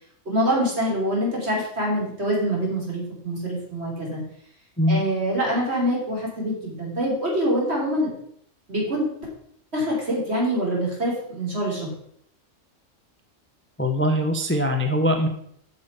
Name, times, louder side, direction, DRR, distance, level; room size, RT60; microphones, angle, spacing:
voice 1, 0.3-4.2 4.9-8.1 8.7-9.1 9.7-11.9, equal, 55° right, -3 dB, 3.5 m, -25 dB
voice 2, 13.8-15.3, equal, 10° left, 4 dB, 0.7 m, -22 dB
8.4 x 6.3 x 5.4 m, 0.68 s
omnidirectional pair, 1.3 m